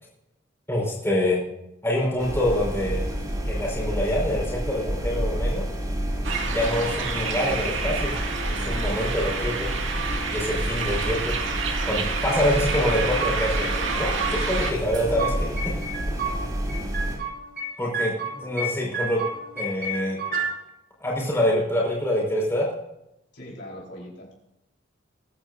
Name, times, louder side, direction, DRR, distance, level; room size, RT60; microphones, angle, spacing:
voice 1, 0.7-1.4 1.8-3.0 3.5-5.6 6.4-8.1 8.5-9.7 10.3-11.3 11.9-15.6 17.8-19.2 19.6-20.2 21.0-22.7, left 1 dB, 15° left, -3 dB, 5.1 m, -26 dB
sound 1, 2.2-17.2, equal, 20° right, 2.9 m, -29 dB
sound 2, 6.2-14.7, right 5 dB, 75° right, 2.3 m, -29 dB
sound 3, 12.7-13.7 13.9-14.7 14.9-16.4 16.7-17.7 17.9-18.7 18.9-20.5, right 3 dB, 50° right, 4.5 m, -30 dB
voice 2, 16.0-16.6 23.3-24.5, left 1 dB, 60° left, -3 dB, 4.7 m, -42 dB
23.0 x 10.5 x 2.7 m, 0.85 s
head